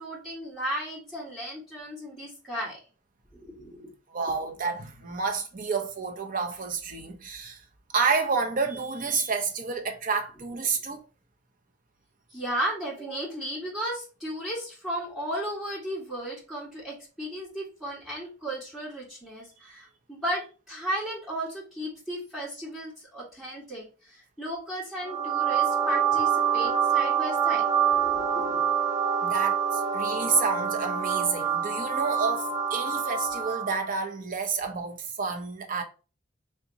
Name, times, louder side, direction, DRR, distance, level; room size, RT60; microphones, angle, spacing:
voice 1, 0.0-2.8 3.3-3.9 12.3-27.6 27.9-28.7, right 1 dB, ahead, 1.5 m, -35 dB
voice 2, 4.1-7.6 7.9-11.0 29.2-35.8, right 5 dB, 45° right, 0.6 m, -29 dB
sound 1, 25.0-33.8, right 7 dB, 20° right, 1.0 m, -26 dB
3.5 x 2.8 x 2.7 m
head